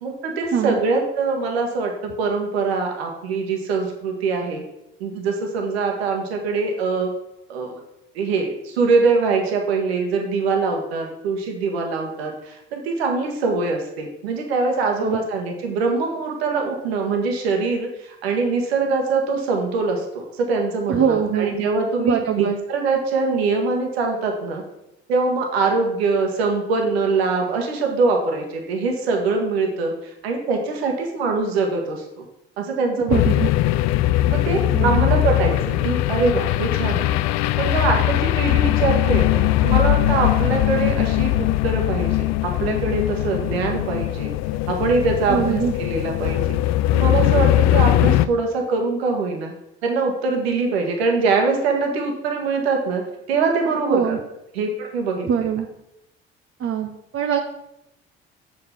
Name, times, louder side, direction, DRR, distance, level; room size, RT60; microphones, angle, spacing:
voice 1, 0.0-4.6 5.0-7.1 7.5-7.8 8.1-24.6 25.1-29.9 30.2-32.2 32.6-33.4 34.3-37.2 37.6-44.3 44.7-46.6 46.9-49.5 49.8-53.0 53.3-54.2 54.5-55.3, right 4 dB, 85° right, 2 dB, 1.5 m, -23 dB
voice 2, 20.9-21.6 22.0-22.6 33.0-33.5 34.7-35.1 45.3-45.7 53.9-54.2 55.2-55.7 56.6-57.4, right 8 dB, 45° right, 2 dB, 1.0 m, -22 dB
sound 1, 33.1-48.3, left 15 dB, 60° left, 0.5 m, -20 dB
7.3 x 5.1 x 5.9 m, 0.83 s
hypercardioid pair, 60°, 30 cm